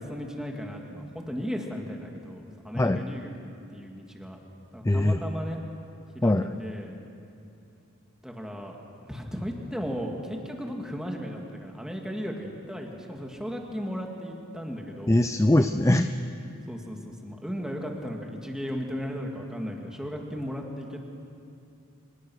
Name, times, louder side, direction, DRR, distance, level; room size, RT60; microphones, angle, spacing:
voice 1, 0.0-4.4 4.7-5.6 6.1-6.9 8.2-8.8 9.0-15.2 16.7-21.0, equal, 5° right, 1 dB, 2.2 m, -36 dB
voice 2, 4.8-5.2 6.2-6.5 15.1-16.1, left 1 dB, 15° left, 9 dB, 0.5 m, -21 dB
25.0 x 20.5 x 6.4 m, 2.7 s
head